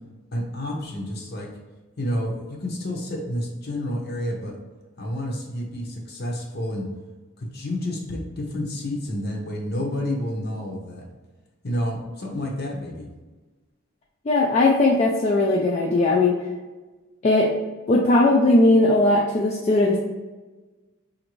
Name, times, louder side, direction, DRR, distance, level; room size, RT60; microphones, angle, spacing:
voice 1, 0.3-1.5 2.0-4.6 5.0-6.9 7.4-11.0 11.6-13.1, left 1 dB, 50° left, 0 dB, 0.8 m, -29 dB
voice 2, 14.3-16.3 17.2-17.5 17.9-20.0, left 2 dB, 30° left, -1 dB, 0.3 m, -18 dB
5.1 x 2.6 x 3.0 m, 1.2 s
head